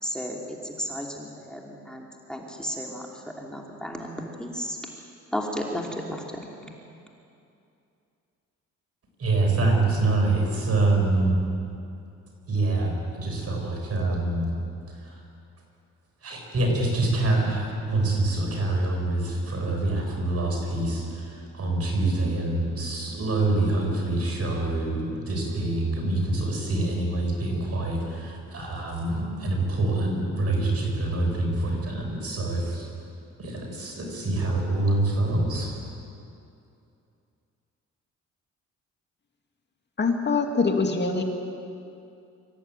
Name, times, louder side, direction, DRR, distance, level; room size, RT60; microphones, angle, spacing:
voice 1, 0.0-3.1 3.4-4.8 5.3-6.5, equal, 5° left, -1 dB, 2.9 m, -33 dB
voice 2, 9.2-11.4 12.5-14.5 16.2-32.9 33.4-35.7, right 2 dB, 55° right, 1 dB, 6.5 m, -25 dB
voice 3, 40.0-41.2, left 4 dB, 35° left, 2 dB, 2.5 m, -23 dB
25.0 x 14.5 x 9.1 m, 2.6 s
cardioid pair, 90°, 30 cm